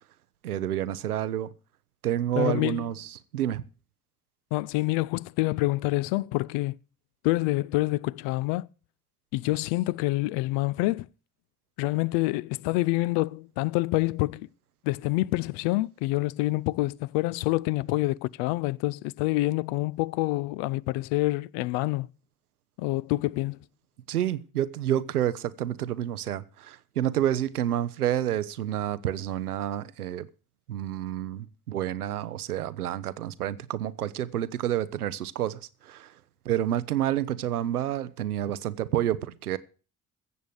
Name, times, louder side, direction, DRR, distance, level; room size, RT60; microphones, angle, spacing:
voice 1, 0.4-1.5 2.0-3.6 24.1-30.3 30.7-36.1 36.5-39.6, right 11 dB, 90° right, 0.6 m, -29 dB
voice 2, 2.4-2.9 4.5-6.8 7.2-8.7 9.3-11.1 11.8-14.5 14.8-22.1 22.8-23.6, left 19 dB, 65° left, 0.5 m, -27 dB
14.5 x 7.5 x 6.5 m
figure-of-eight pair, 45°, 44 cm